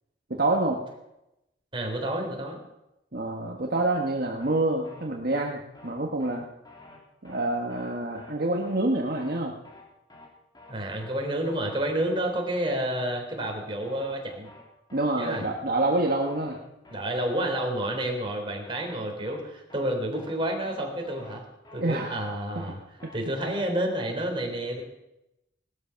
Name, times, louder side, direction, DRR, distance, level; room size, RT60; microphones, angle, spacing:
voice 1, 0.3-0.8 3.1-6.5 7.2-9.5 14.9-16.6 21.7-22.1 22.6-22.7, right 2 dB, 55° right, 0 dB, 1.5 m, -27 dB
voice 2, 1.7-2.6 10.7-14.5 15.1-15.5 16.9-21.4 21.7-22.8 23.1-24.8, right 1 dB, 30° right, 1 dB, 3.7 m, -30 dB
sound 1, 4.4-4.6 4.8-5.0 5.3-5.5 5.7-5.9 6.2-6.4 6.6-7.0 7.2-7.4 7.7-7.9 8.1-8.3 8.6-8.8 9.0-9.4 9.6-9.8 10.1-10.3 10.5-10.7 11.0-11.2 11.4-11.8 12.0-12.2 12.5-12.7 12.9-13.1 13.4-13.6 13.8-14.2 14.4-14.6 14.9-15.1 15.3-15.5 15.8-16.0 16.2-16.6 16.8-17.0 17.3-17.5 17.7-17.9 18.2-18.4 18.6-19.0 19.2-19.4 19.7-19.9 20.1-20.3 20.6-20.8 21.0-21.4 21.6-21.8 22.1-22.3 22.5-22.7 23.0-23.2 23.4-23.6, left 2 dB, 25° left, 3.5 m, -50 dB
18.5 x 13.0 x 5.8 m, 0.89 s
head